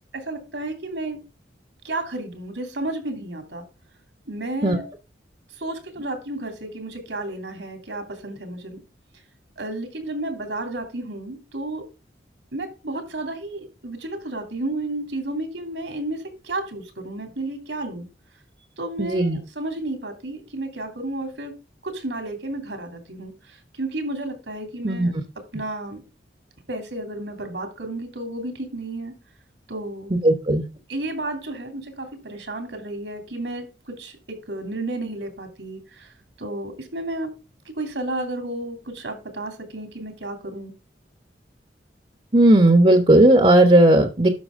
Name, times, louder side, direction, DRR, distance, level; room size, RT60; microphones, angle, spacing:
voice 1, 0.1-1.2 1.8-3.6 4.3-4.8 5.5-8.8 9.6-11.9 12.5-18.1 18.8-21.5 21.8-26.0 26.7-29.1 29.7-30.2 30.9-37.3 37.6-40.7, right 2 dB, 80° right, 3.0 m, -32 dB
voice 2, 19.0-19.4 24.8-25.1 30.2-30.6 42.3-44.3, right 1 dB, 35° right, 1.0 m, -15 dB
12.0 x 6.1 x 3.6 m
head